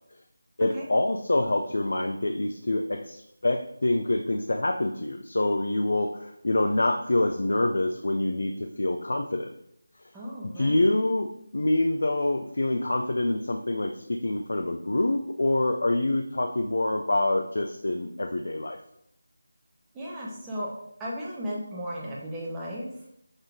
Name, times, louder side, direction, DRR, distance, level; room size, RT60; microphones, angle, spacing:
voice 1, 0.6-9.5 10.6-18.8, left 2 dB, 65° left, 4 dB, 0.6 m, -26 dB
voice 2, 10.1-10.8 19.9-20.7 21.0-22.9, equal, 10° right, -6 dB, 1.2 m, -35 dB
6.4 x 3.7 x 4.7 m, 0.76 s
figure-of-eight pair, 165°, 0 cm